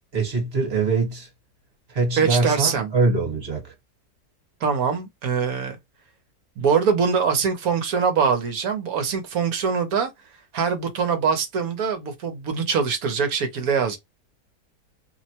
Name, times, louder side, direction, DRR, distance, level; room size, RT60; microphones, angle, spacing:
voice 1, 0.1-1.3 1.9-3.7, right 3 dB, 40° right, 1.3 m, -23 dB
voice 2, 2.2-2.9 4.6-5.8 6.6-10.1 10.5-14.0, right 6 dB, 70° right, 1.0 m, -23 dB
2.9 x 2.1 x 2.7 m
omnidirectional pair, 1.8 m